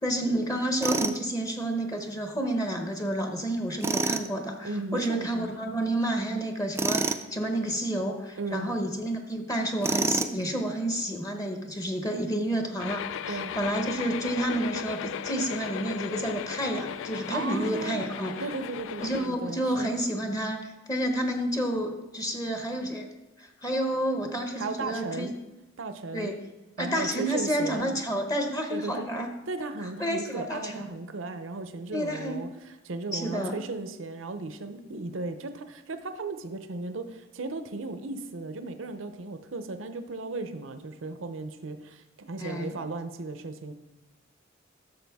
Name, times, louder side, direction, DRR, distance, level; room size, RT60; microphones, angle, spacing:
voice 1, 0.0-18.3 19.0-23.1 23.4-25.3 26.1-26.4 26.8-29.3 30.0-30.9 31.9-32.4 33.1-33.6 42.4-42.8, right 1 dB, 20° left, 4 dB, 0.8 m, -30 dB
Tools, 0.8-1.2 3.8-4.3 6.8-7.3 9.8-10.4, right 3 dB, 15° right, 0.3 m, -27 dB
voice 2, 4.6-5.5 8.4-8.7 13.3-13.5 17.3-18.0 18.4-19.9 24.6-25.3 25.8-26.4 26.8-27.9 28.7-29.1 29.5-32.5 32.8-43.7, right 3 dB, 75° right, 9 dB, 0.7 m, -36 dB
sound 1, 12.8-19.3, left 8 dB, 70° left, 0.3 m, -36 dB
12.0 x 6.7 x 3.5 m, 1.1 s
head